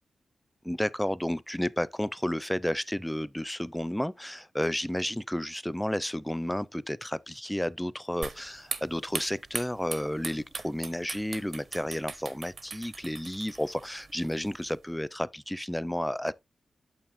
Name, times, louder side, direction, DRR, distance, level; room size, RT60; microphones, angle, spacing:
voice 1, 0.6-16.3, equal, 5° left, 0.4 m, -32 dB
sound 1, 8.2-14.8, right 4 dB, 70° right, 1.1 m, -41 dB
8.8 x 6.9 x 2.6 m
cardioid pair, 65°, 0 cm